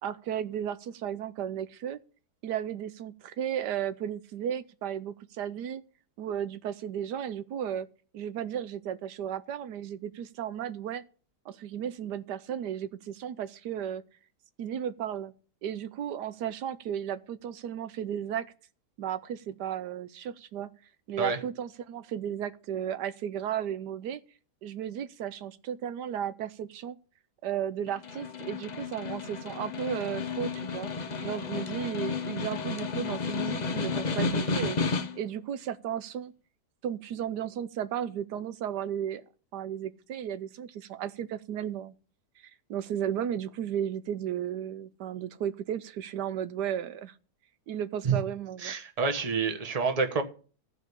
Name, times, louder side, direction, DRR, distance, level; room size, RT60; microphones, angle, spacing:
voice 1, 0.0-2.0 2.4-5.8 6.2-7.9 8.1-11.0 11.4-14.0 14.6-15.3 15.6-18.5 19.0-20.7 21.1-24.2 24.6-27.0 27.4-30.9 31.2-34.8 35.2-36.3 36.8-39.2 39.5-41.9 42.4-47.2 47.7-48.7, right 9 dB, 85° right, 1.3 m, -34 dB
Snare drum, 27.9-35.4, left 4 dB, 45° left, 0.6 m, -32 dB
voice 2, 48.6-50.2, right 5 dB, 25° right, 1.2 m, -28 dB
14.0 x 4.9 x 8.2 m
omnidirectional pair, 1.8 m